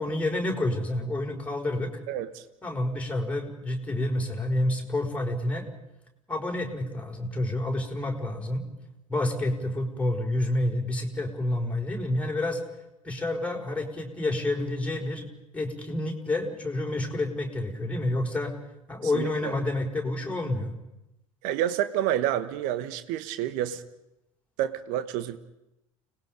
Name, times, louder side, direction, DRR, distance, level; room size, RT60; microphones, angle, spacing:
voice 1, 0.0-1.9 2.6-5.7 6.3-8.7 9.1-12.6 13.0-15.3 15.5-18.5 18.9-20.7, left 1 dB, 5° left, 0 dB, 5.3 m, -29 dB
voice 2, 2.1-2.5 19.0-19.5 21.4-23.8 24.6-25.4, right 11 dB, 50° right, 12 dB, 1.3 m, -29 dB
30.0 x 20.0 x 5.3 m, 0.90 s
figure-of-eight pair, 70°, 17 cm